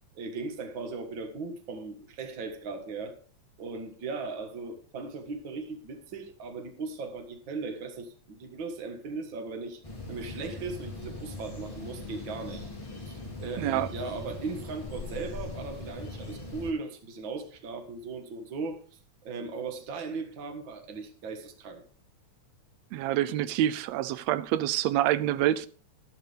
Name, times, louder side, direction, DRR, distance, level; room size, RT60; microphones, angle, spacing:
voice 1, 0.2-3.2 3.6-9.8 10.1-12.7 13.0-21.8, right 4 dB, 45° right, 2.0 m, -38 dB
sound 1, 9.8-16.7, left 2 dB, 10° left, 2.6 m, -40 dB
voice 2, 13.6-13.9 22.9-25.7, right 12 dB, 75° right, 1.7 m, -27 dB
12.5 x 12.0 x 3.4 m
omnidirectional pair, 3.4 m